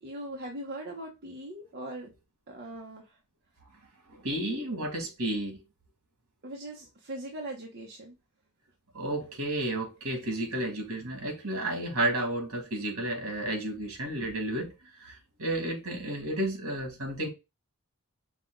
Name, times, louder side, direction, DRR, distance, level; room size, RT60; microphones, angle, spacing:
voice 1, 0.0-2.1 2.5-3.1 6.4-8.2, right 1 dB, 45° right, 0.9 m, -40 dB
voice 2, 4.1-5.6 8.9-14.7 15.0-17.3, right 1 dB, 70° right, 2.2 m, -32 dB
5.8 x 2.3 x 3.7 m
head